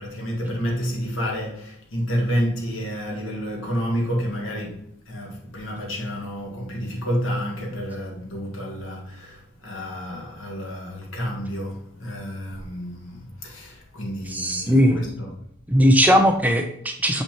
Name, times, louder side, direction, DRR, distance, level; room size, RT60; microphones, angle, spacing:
voice 1, 0.0-15.4, equal, 75° left, 1.7 m, -29 dB
voice 2, 14.3-15.0 15.7-17.2, equal, 10° right, 0.5 m, -18 dB
6.8 x 5.5 x 2.9 m
head